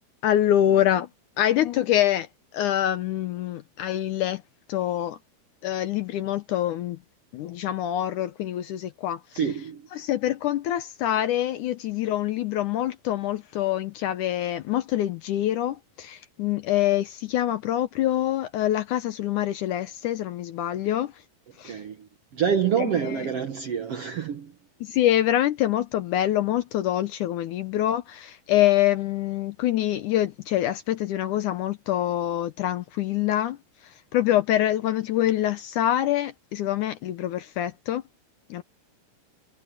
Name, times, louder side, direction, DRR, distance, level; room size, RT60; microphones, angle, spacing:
voice 1, 0.2-1.1 1.4-2.3 2.5-4.4 4.7-5.2 5.6-7.0 7.3-9.2 9.9-21.1 21.6-21.8 24.8-33.6 34.1-38.0 38.5-38.6, left 12 dB, 70° left, 2.0 m, -25 dB
voice 2, 9.3-9.8 20.8-21.0 21.6-24.5, right 8 dB, 60° right, 1.6 m, -27 dB
omnidirectional pair, 4.2 m